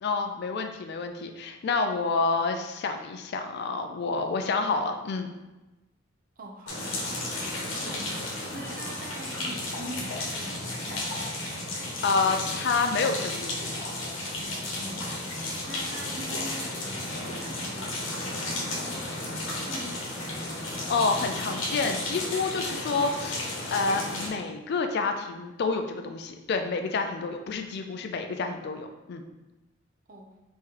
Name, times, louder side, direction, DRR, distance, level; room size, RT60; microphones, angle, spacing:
voice 1, 0.0-5.3 12.0-13.6 20.9-29.2, left 4 dB, 55° left, 5 dB, 0.4 m, -28 dB
voice 2, 6.4-7.1 7.8-11.3 14.4-15.1 15.4-20.1 30.1-30.3, right 1 dB, 45° right, 1 dB, 0.6 m, -44 dB
sound 1, 6.7-24.3, left 1 dB, 70° left, 1.1 m, -33 dB
sound 2, 14.2-22.0, left 1 dB, 35° left, 1.3 m, -47 dB
3.7 x 3.1 x 4.4 m, 1.1 s
head